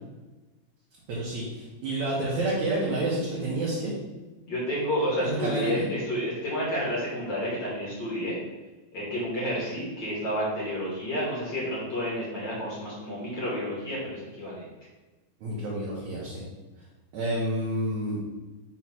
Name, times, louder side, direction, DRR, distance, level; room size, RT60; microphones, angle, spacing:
voice 1, 1.1-3.9 5.2-5.9 15.4-16.4 17.1-18.2, right 1 dB, 65° right, -6 dB, 2.1 m, -29 dB
voice 2, 4.5-8.4 8.9-14.7, equal, 45° left, -6 dB, 1.6 m, -30 dB
6.1 x 3.1 x 5.7 m, 1.2 s
omnidirectional pair, 4.3 m